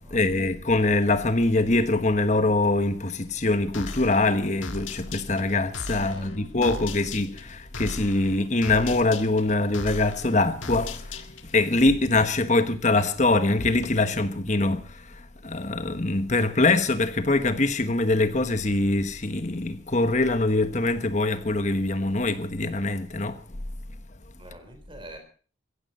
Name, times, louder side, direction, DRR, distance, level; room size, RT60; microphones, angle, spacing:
voice 1, 0.1-11.3 11.5-23.4, left 2 dB, 35° left, 1.2 m, -23 dB
sound 1, 3.7-11.6, left 3 dB, 80° left, 1.8 m, -37 dB
voice 2, 6.0-7.1 12.5-12.7 24.4-25.2, right 1 dB, 25° right, 4.0 m, -45 dB
16.0 x 15.5 x 5.5 m
head